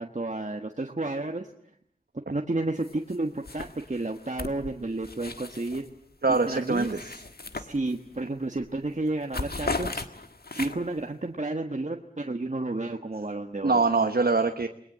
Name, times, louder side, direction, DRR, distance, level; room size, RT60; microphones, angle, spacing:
voice 1, 0.0-1.5 2.1-5.8 6.4-7.2 7.5-10.0 10.5-13.8, right 2 dB, 50° right, 4 dB, 1.4 m, -31 dB
sound 1, 2.8-3.2 3.4-5.9 6.3-8.2 8.6-8.8 9.1-11.0, left 3 dB, 80° left, 1.5 m, -36 dB
voice 2, 6.2-7.0 13.6-14.7, right 3 dB, 80° right, 6 dB, 1.1 m, -23 dB
29.0 x 21.5 x 7.5 m, 0.69 s
wide cardioid pair, 45°, 16 cm